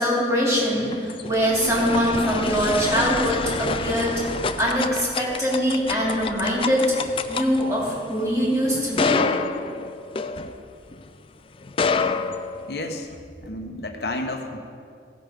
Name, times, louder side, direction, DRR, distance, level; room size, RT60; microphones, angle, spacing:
voice 1, 0.0-4.2 4.6-6.8 7.3-9.2, equal, 15° right, -6 dB, 2.9 m, -23 dB
sound 1, 0.7-11.0 11.6-13.1, left 4 dB, 30° left, 0.4 m, -28 dB
voice 2, 12.7-13.1 13.4-14.6, left 2 dB, 60° left, 4 dB, 1.1 m, -31 dB
15.5 x 6.5 x 5.1 m, 2.4 s
head